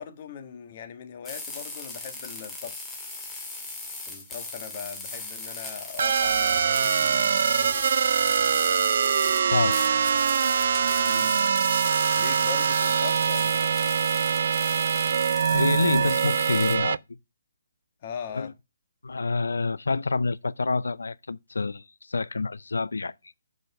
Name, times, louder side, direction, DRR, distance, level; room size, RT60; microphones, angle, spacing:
voice 1, 0.0-2.9 4.1-7.8 11.0-11.3 12.1-13.8 18.0-18.5, left 7 dB, 40° left, 1.5 m, -40 dB
sound 1, 1.2-16.8, left 2 dB, 10° left, 2.0 m, -38 dB
sound 2, 6.0-17.0, right 7 dB, 60° right, 0.3 m, -23 dB
voice 2, 9.5-9.9 15.5-17.0 18.3-18.5 19.0-21.8 22.1-23.1, left 3 dB, 85° left, 0.5 m, -27 dB
7.7 x 5.3 x 4.7 m
hypercardioid pair, 150°, 0 cm